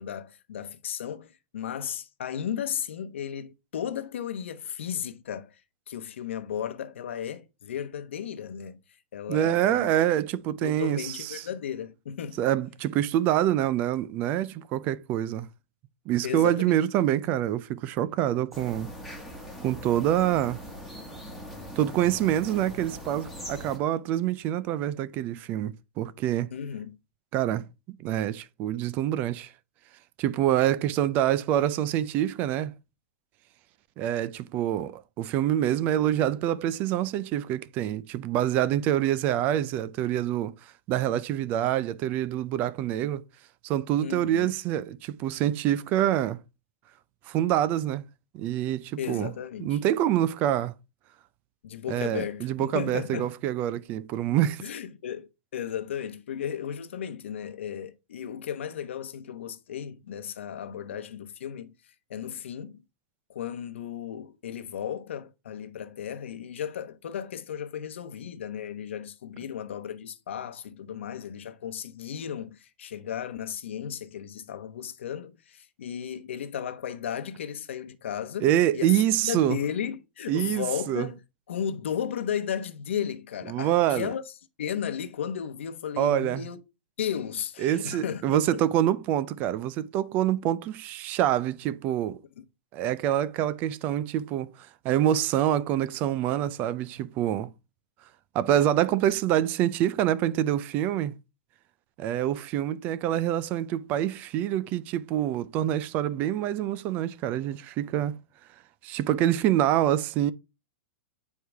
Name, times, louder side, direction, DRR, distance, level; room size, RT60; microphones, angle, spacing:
voice 1, 0.0-5.6 5.9-8.8 9.1-9.9 10.6-12.4 16.2-16.8 26.5-26.9 44.0-44.5 49.0-49.8 51.6-53.3 54.6-61.7 62.1-62.8 63.3-79.0 79.2-81.2 81.5-84.2 84.6-86.6 87.0-88.7 92.4-92.5, left 8 dB, 85° left, 1.0 m, -35 dB
voice 2, 9.3-11.4 12.4-15.5 16.1-18.9 19.6-20.6 21.8-26.5 27.3-29.5 30.2-32.7 34.0-40.5 40.9-43.2 43.6-46.4 47.3-48.0 48.3-49.3 49.6-50.7 51.9-54.6 78.4-79.6 80.3-81.1 83.5-84.1 86.0-86.4 87.6-92.2 92.7-94.5 94.8-97.5 98.3-101.1 102.0-108.1 108.8-110.3, right 12 dB, 25° right, 0.4 m, -26 dB
sound 1, 18.5-23.8, equal, 5° right, 1.5 m, -41 dB
8.3 x 4.7 x 3.4 m
supercardioid pair, 160°, 6 cm